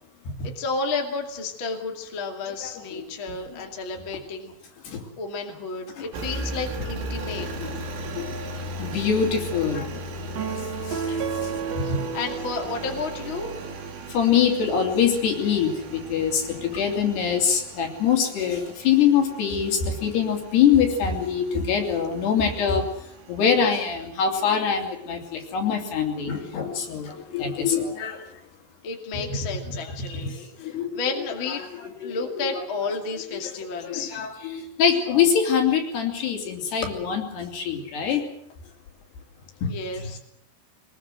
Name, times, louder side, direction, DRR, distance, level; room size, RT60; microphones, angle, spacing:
voice 1, 0.4-4.5 5.2-7.7 12.1-13.6 28.8-31.6 32.0-34.1 39.7-40.2, left 4 dB, 35° left, 3 dB, 2.5 m, -32 dB
voice 2, 2.6-3.0 3.5-3.6 4.8-5.0 6.0-6.1 7.6-7.8 8.2-11.3 11.8-12.0 14.1-22.9 23.3-28.2 29.1-29.3 29.6-31.1 31.5-31.6 32.0-32.6 33.3-38.2 39.6-39.7, left 7 dB, 60° left, 3 dB, 5.1 m, -24 dB
Engine, 6.1-24.1, right 1 dB, 90° right, 5.1 m, -37 dB
sound 1, 10.3-13.8, right 6 dB, 65° right, 1.7 m, -32 dB
23.5 x 21.5 x 7.8 m, 0.73 s
omnidirectional pair, 5.4 m